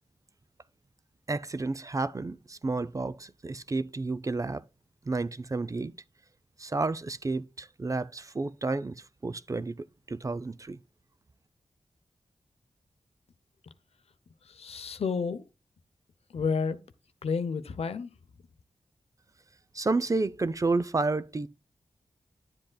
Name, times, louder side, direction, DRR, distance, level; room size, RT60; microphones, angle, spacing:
voice 1, 1.3-4.6 5.1-5.9 6.6-9.0 9.2-10.8 19.7-21.5, right 3 dB, 30° right, 0.4 m, -31 dB
voice 2, 14.6-15.4 16.3-16.8 17.2-18.1, left 5 dB, 75° left, 0.7 m, -30 dB
10.5 x 7.6 x 2.2 m
cardioid pair, 65°, 10 cm